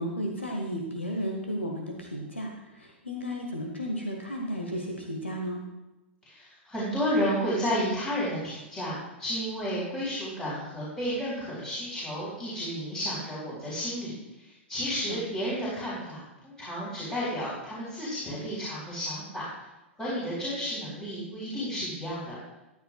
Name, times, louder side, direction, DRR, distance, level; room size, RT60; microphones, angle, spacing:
voice 1, 0.0-2.5 2.8-5.6 15.1-15.2, equal, 85° left, 1 dB, 1.2 m, -33 dB
voice 2, 6.2-19.6 20.0-22.3, equal, 10° left, -9 dB, 3.9 m, -32 dB
13.5 x 10.5 x 2.4 m, 1.0 s
figure-of-eight pair, 100°, 6 cm